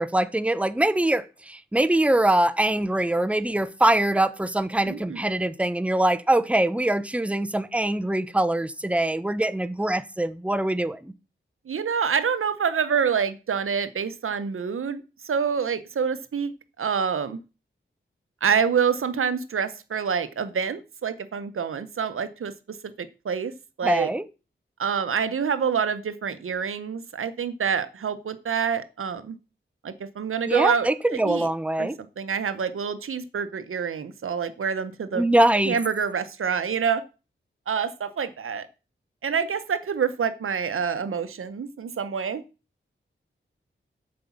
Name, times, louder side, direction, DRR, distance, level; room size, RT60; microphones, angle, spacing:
voice 1, 0.0-11.1 23.8-24.2 30.5-32.0 35.1-35.7, right 1 dB, 5° right, 0.8 m, -23 dB
voice 2, 4.9-5.2 11.7-17.4 18.4-22.5 23.0-23.5 23.8-24.1 24.8-29.4 29.8-30.9 31.2-31.5 31.8-31.9 32.2-35.3 35.7-37.0 37.7-38.7 39.2-42.4, right 6 dB, 85° right, 0.8 m, -27 dB
7.8 x 5.1 x 7.1 m
cardioid pair, 60°, 21 cm